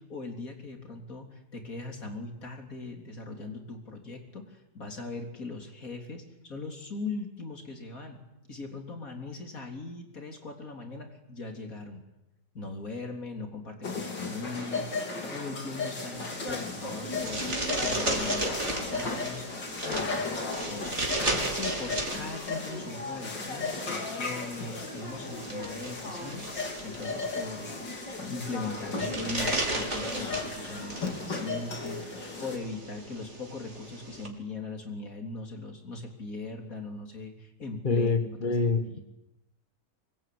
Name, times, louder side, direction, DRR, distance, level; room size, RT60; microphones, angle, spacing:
voice 1, 0.0-8.2 8.5-12.0 12.5-19.4 19.9-26.4 26.8-39.0, left 3 dB, 50° left, 3 dB, 4.0 m, -40 dB
sound 1, 13.8-32.6, left 3 dB, 80° left, 4.1 m, -35 dB
sound 2, 16.1-34.3, right 1 dB, 40° right, 4.0 m, -36 dB
voice 2, 37.8-39.0, left 3 dB, 30° left, 8 dB, 1.3 m, -26 dB
25.0 x 20.0 x 9.6 m, 0.95 s
omnidirectional pair, 1.9 m